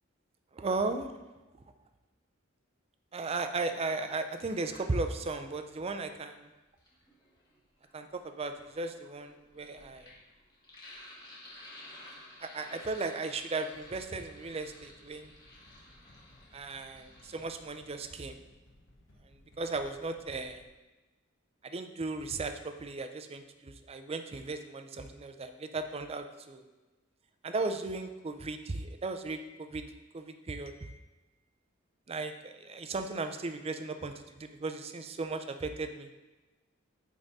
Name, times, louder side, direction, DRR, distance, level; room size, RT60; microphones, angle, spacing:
voice 1, 0.5-1.1 3.1-6.5 7.9-10.1 12.4-15.3 16.5-18.4 19.6-20.6 21.6-26.6 27.4-29.9 30.1-31.0 32.1-36.1, right 3 dB, 30° right, 7 dB, 0.5 m, -36 dB
Sink (filling or washing), 3.9-5.4 6.5-17.5, left 1 dB, 20° left, 1.5 m, -54 dB
sound 1, 13.7-20.7, left 1 dB, 70° left, 1.1 m, -61 dB
8.8 x 3.7 x 4.1 m, 1.1 s
head